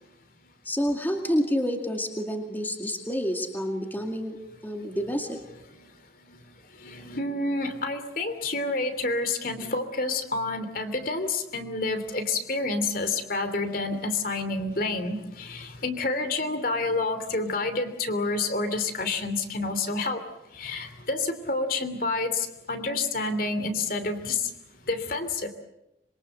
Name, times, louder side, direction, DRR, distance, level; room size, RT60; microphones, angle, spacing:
voice 1, 0.6-4.4 4.6-5.4, equal, 10° left, 4 dB, 2.2 m, -28 dB
voice 2, 6.8-20.2 20.5-24.4 24.9-25.5, left 3 dB, 50° left, 9 dB, 2.9 m, -29 dB
26.0 x 23.5 x 8.0 m, 0.89 s
head